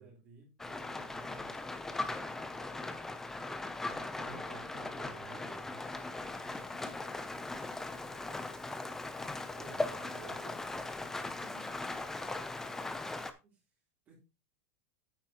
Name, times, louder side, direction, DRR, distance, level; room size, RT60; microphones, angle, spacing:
voice 1, 0.0-1.7 6.4-7.2 11.2-11.9 13.4-13.7 14.1-14.2, right 3 dB, 25° right, -3 dB, 3.6 m, -58 dB
Rain, 0.6-13.3, left 2 dB, 5° left, 0.6 m, -39 dB
voice 2, 3.9-6.0 9.6-10.8, right 8 dB, 65° right, 2 dB, 3.8 m, -53 dB
9.1 x 8.2 x 2.9 m, 0.27 s
supercardioid pair, 165°, 8 cm